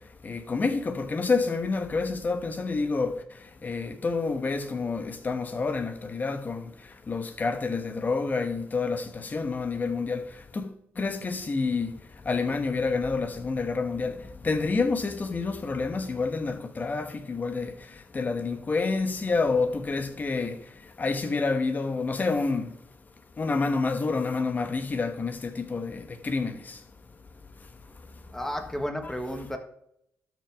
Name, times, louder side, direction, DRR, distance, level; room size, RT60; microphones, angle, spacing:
voice 1, 0.2-3.1 3.6-6.6 7.1-10.2 10.5-10.7 11.0-11.9 12.3-14.1 14.4-17.7 18.1-20.5 21.0-22.7 23.4-25.4 25.7-25.9 26.2-26.5, left 4 dB, 35° left, 1.1 m, -28 dB
voice 2, 28.3-29.6, equal, 5° left, 1.5 m, -32 dB
12.5 x 6.2 x 3.5 m
cardioid pair, 110°, 5 cm